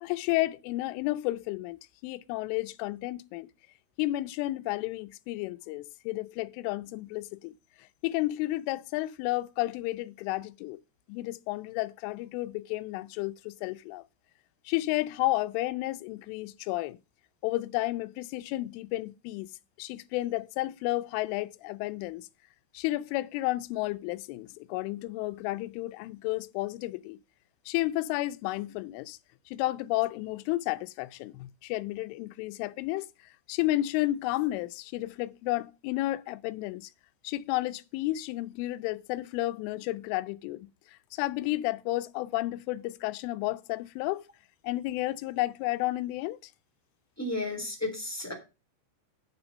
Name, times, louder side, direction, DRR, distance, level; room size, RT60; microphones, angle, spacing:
voice 1, 0.0-3.5 4.0-7.5 8.0-10.8 11.1-14.0 14.7-17.0 17.4-19.5 19.8-22.3 22.7-27.2 27.7-29.2 29.5-33.1 33.5-36.9 37.2-40.7 41.1-44.2 44.6-46.4, left 17 dB, 90° left, 3.2 m, -32 dB
voice 2, 47.2-48.3, left 2 dB, 5° left, 1.9 m, -33 dB
8.9 x 7.0 x 5.2 m
omnidirectional pair, 5.5 m